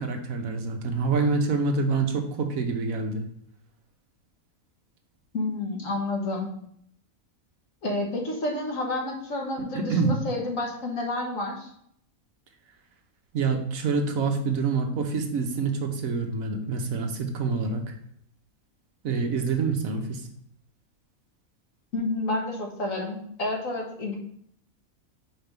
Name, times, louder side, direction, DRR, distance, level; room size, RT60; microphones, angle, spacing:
voice 1, 0.0-3.2 9.7-10.1 13.3-17.9 19.0-20.2, right 4 dB, 75° right, 4 dB, 1.3 m, -26 dB
voice 2, 5.3-6.5 7.8-11.7 21.9-24.2, left 2 dB, 70° left, 0 dB, 1.8 m, -30 dB
5.1 x 4.6 x 5.3 m, 0.69 s
omnidirectional pair, 1.5 m